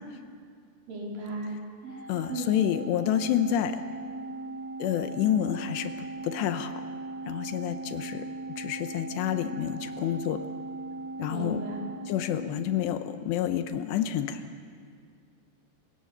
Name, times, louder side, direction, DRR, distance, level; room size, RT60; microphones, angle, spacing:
voice 1, 0.9-1.6 1.9-2.6 11.3-11.8, right 1 dB, 55° right, -2 dB, 5.1 m, -36 dB
Organ, 1.8-13.1, right 2 dB, 25° right, 2.5 m, -39 dB
voice 2, 2.1-3.8 4.8-5.9 6.2-6.8 7.3-8.3 8.6-10.4 11.2-11.6 12.1-14.4, left 10 dB, 80° left, 9 dB, 2.9 m, -28 dB
28.5 x 17.5 x 6.7 m, 2.2 s
omnidirectional pair, 5.1 m